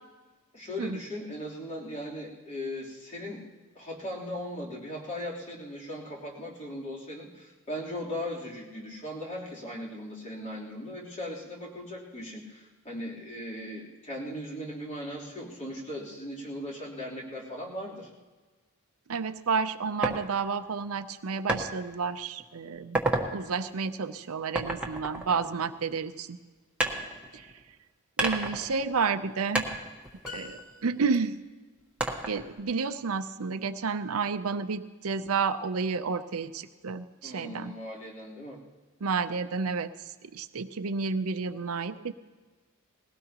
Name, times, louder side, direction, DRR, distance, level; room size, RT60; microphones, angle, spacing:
voice 1, 0.5-3.4 3.7-18.1 37.2-38.6, left 1 dB, 30° left, -4 dB, 3.4 m, -38 dB
voice 2, 19.1-23.0 23.3-26.4 27.3-27.5 28.2-29.7 30.3-31.4 32.3-37.7 39.0-42.1, right 5 dB, 75° right, 11 dB, 0.6 m, -31 dB
sound 1, 20.0-20.2 21.5-21.7 22.2-22.4 22.8-23.3 24.5-26.0 26.8-27.7 28.2-29.3 29.5-31.1 32.0-32.6, right 2 dB, 5° right, 1.3 m, -31 dB
sound 2, 30.2-31.4, left 4 dB, 85° left, 3.0 m, -45 dB
20.0 x 17.5 x 2.9 m, 1.3 s
head